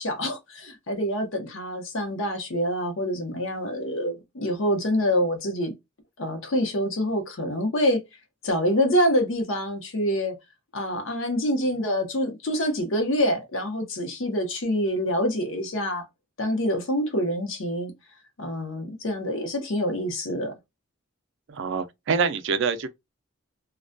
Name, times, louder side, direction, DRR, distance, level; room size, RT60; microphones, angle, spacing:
voice 1, 0.0-5.7 6.2-8.0 8.4-10.4 10.7-16.1 16.4-17.9 18.4-20.5, equal, 65° left, 0.8 m, -26 dB
voice 2, 21.5-22.9, right 5 dB, 60° right, 0.4 m, -25 dB
2.3 x 2.2 x 2.4 m
head